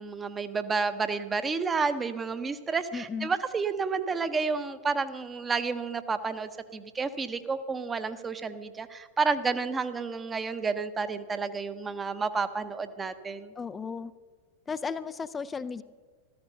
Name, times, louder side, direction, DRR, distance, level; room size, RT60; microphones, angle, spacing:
voice 1, 0.0-13.5, right 4 dB, 15° right, 11 dB, 0.9 m, -30 dB
voice 2, 2.9-3.3 13.6-14.1 14.7-15.8, left 5 dB, 15° left, 13 dB, 0.5 m, -35 dB
14.0 x 14.0 x 5.4 m, 1.5 s
figure-of-eight pair, 90°, 0 cm